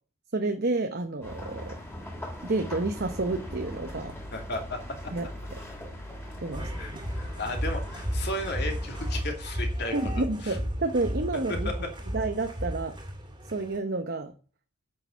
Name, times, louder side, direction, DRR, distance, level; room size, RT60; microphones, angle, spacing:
voice 1, 0.3-1.8 2.4-4.1 5.1-5.3 6.4-6.7 9.9-11.7 12.1-13.0 13.5-14.3, right 2 dB, 45° right, 6 dB, 0.9 m, -29 dB
sound 1, 1.2-9.2, equal, 10° left, 2.9 m, -42 dB
sound 2, 3.0-9.8, left 1 dB, 35° left, 1.2 m, -45 dB
voice 2, 4.3-4.8 6.6-10.6 11.5-11.9, left 1 dB, 50° left, 3 dB, 2.6 m, -35 dB
sound 3, 6.5-13.8, equal, 20° right, 2.4 m, -33 dB
8.9 x 6.7 x 8.2 m, 0.40 s
head